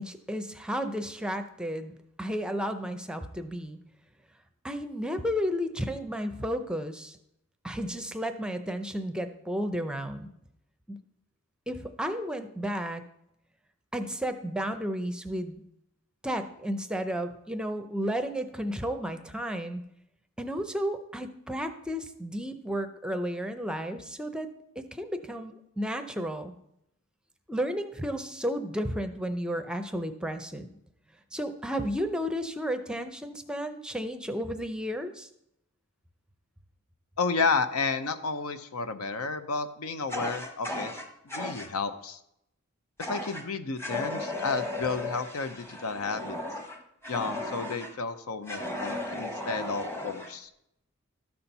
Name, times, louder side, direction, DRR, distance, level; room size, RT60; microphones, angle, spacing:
voice 1, 0.0-3.8 4.6-7.2 7.6-10.3 10.9-11.0 11.7-13.0 13.9-15.6 16.2-19.8 20.4-24.5 24.9-26.5 27.5-30.7 31.3-35.3, equal, 5° right, 7 dB, 0.5 m, -33 dB
voice 2, 37.2-40.9 41.3-42.2 43.0-46.4 47.1-50.5, left 4 dB, 80° left, 10 dB, 0.7 m, -31 dB
Fire, 40.1-41.7 43.0-43.4 43.8-47.9 48.5-50.3, left 1 dB, 10° left, 0.9 m, -35 dB
12.5 x 4.3 x 5.4 m, 0.79 s
head